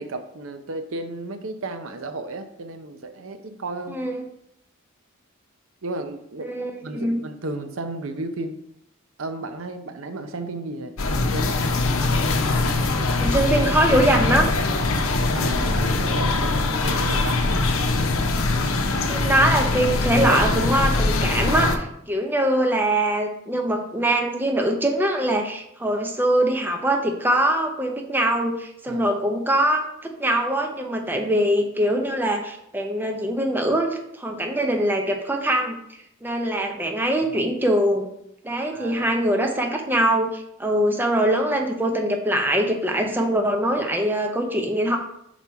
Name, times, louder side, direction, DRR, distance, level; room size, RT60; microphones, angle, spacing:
voice 1, 0.0-4.0 5.8-6.5 6.8-8.6 9.2-11.6 15.3-17.4 28.9-29.0 31.2-31.3 38.7-39.1, right 2 dB, 70° right, 8 dB, 0.6 m, -33 dB
voice 2, 3.9-4.2 6.4-7.2 13.2-14.5 19.1-35.8 36.2-38.1 38.4-45.0, right 1 dB, 10° right, 2 dB, 0.6 m, -22 dB
sound 1, 11.0-21.8, left 3 dB, 80° left, 0.7 m, -22 dB
5.9 x 4.1 x 4.6 m, 0.77 s
head